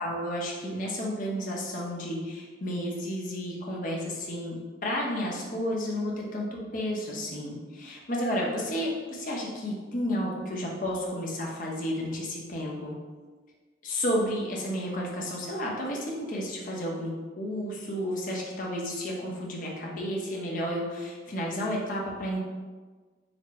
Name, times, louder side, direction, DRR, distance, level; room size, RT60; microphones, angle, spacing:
voice 1, 0.0-13.0 13.8-22.4, equal, 45° left, -3 dB, 0.8 m, -32 dB
4.3 x 2.1 x 4.1 m, 1.4 s
head